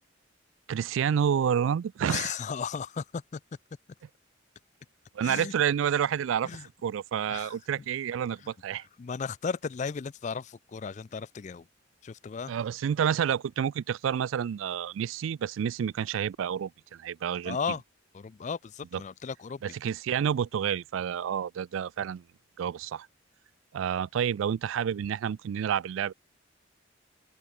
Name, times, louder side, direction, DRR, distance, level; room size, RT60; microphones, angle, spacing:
voice 1, 0.7-2.3 5.2-6.5 6.8-8.8 12.5-17.6 18.9-19.0 19.6-22.2 22.6-23.1 23.7-26.1, right 8 dB, 80° right, 0.3 m, -29 dB
voice 2, 2.1-3.4 5.2-5.5 6.4-6.7 7.3-7.6 8.4-8.5 9.0-11.7 12.0-12.5 17.4-17.8 18.1-19.6, left 6 dB, 35° left, 0.3 m, -35 dB
open air
head